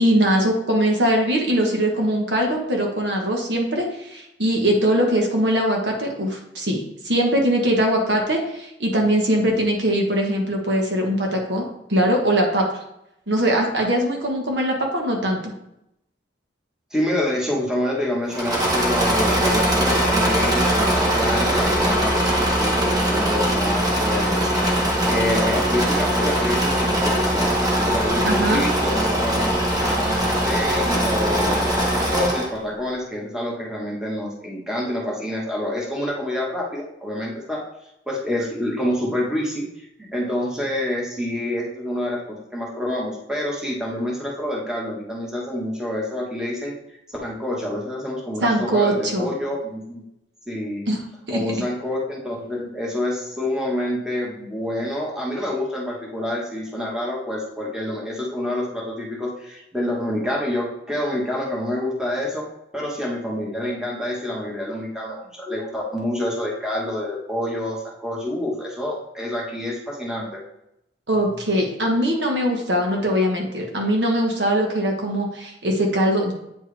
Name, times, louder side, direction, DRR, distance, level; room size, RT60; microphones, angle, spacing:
voice 1, 0.0-12.6 13.3-15.5 28.2-28.6 48.4-49.3 50.9-51.0 51.3-51.4 71.1-76.3, right 1 dB, 65° right, 1 dB, 1.3 m, -21 dB
voice 2, 16.9-24.7 25.1-27.5 27.8-29.6 29.8-37.6 38.1-46.7 47.1-50.0 50.5-50.8 51.3-62.4 62.7-70.4, left 1 dB, 5° right, -4 dB, 1.4 m, -27 dB
Engine / Mechanisms, 18.3-32.6, right 1 dB, 20° right, 1.1 m, -21 dB
8.5 x 4.5 x 3.4 m, 0.82 s
head